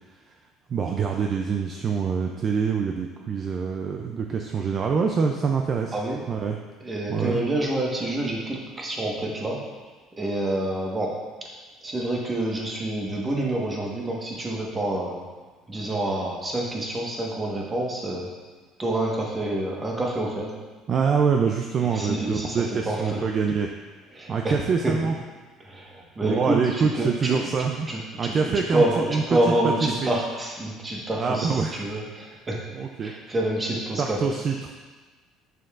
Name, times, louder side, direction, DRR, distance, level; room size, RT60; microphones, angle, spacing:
voice 1, 0.7-6.0 6.3-6.6 7.1-7.4 20.9-23.7 24.3-25.2 26.2-27.9 28.2-30.1 31.2-31.8 32.7-33.1 34.0-34.7, right 5 dB, 40° right, 3 dB, 0.4 m, -25 dB
voice 2, 6.8-9.6 10.2-11.2 11.8-15.2 15.7-18.3 18.8-20.5 21.9-23.2 24.1-24.5 24.8-24.9 25.6-27.4 27.9-32.6 33.0-34.2, right 1 dB, 20° right, -2 dB, 1.4 m, -27 dB
6.7 x 6.4 x 2.5 m, 1.3 s
cardioid pair, 105°, 0 cm